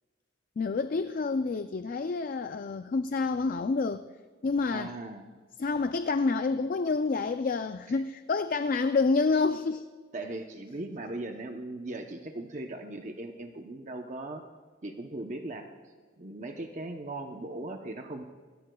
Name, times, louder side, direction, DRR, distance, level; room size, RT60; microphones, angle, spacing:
voice 1, 0.6-4.0 4.4-4.9 5.6-9.9, left 4 dB, 45° left, 10 dB, 0.4 m, -28 dB
voice 2, 4.7-5.4 10.1-14.4 14.8-15.7 16.2-18.2, right 2 dB, 40° right, 4 dB, 0.8 m, -38 dB
21.0 x 16.0 x 2.3 m, 1.5 s
head